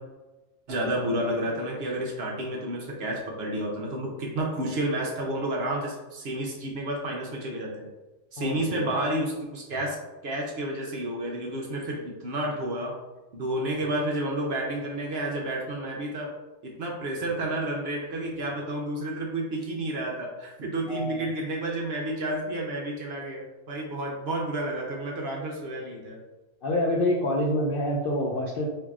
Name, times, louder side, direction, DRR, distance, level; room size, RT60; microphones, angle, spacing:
voice 1, 0.7-7.9 8.3-10.0 10.2-13.0 13.3-16.3 16.6-26.2, right 1 dB, 60° right, -1 dB, 0.8 m, -30 dB
voice 2, 8.4-8.9 20.9-21.2 26.6-28.7, left 1 dB, 65° left, -3 dB, 0.5 m, -27 dB
4.7 x 2.6 x 2.4 m, 1.1 s
omnidirectional pair, 1.4 m